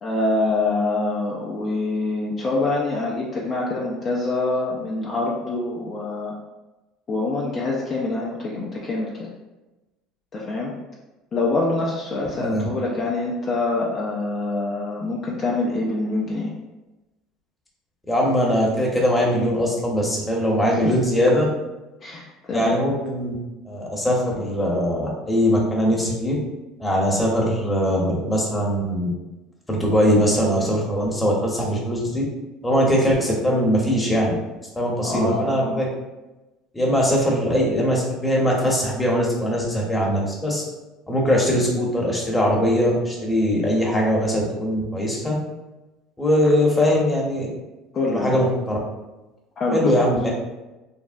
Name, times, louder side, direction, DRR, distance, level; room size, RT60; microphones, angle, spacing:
voice 1, 0.0-6.3 7.1-9.3 10.3-10.7 11.3-16.5 22.0-22.8 35.0-35.9 47.9-48.4 49.6-49.9, left 2 dB, 40° left, -3 dB, 0.5 m, -25 dB
voice 2, 12.3-12.7 18.1-21.5 22.5-23.4 23.6-26.4 26.8-29.1 29.7-32.2 32.6-34.3 34.7-35.9 36.7-40.6 41.1-45.4 46.2-47.5 48.1-48.8 49.7-50.3, equal, 10° left, -3 dB, 0.9 m, -21 dB
3.4 x 2.0 x 2.5 m, 1.1 s
hypercardioid pair, 85°, 0 cm